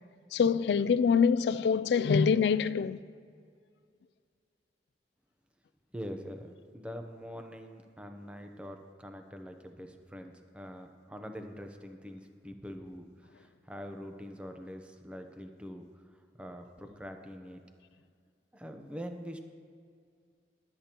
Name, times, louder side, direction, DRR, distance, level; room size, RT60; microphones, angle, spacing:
voice 1, 0.3-3.0, left 6 dB, 70° left, 0.3 m, -25 dB
voice 2, 5.9-15.8 16.4-17.6 18.5-19.4, equal, 5° right, 0.7 m, -44 dB
20.5 x 8.6 x 3.0 m
head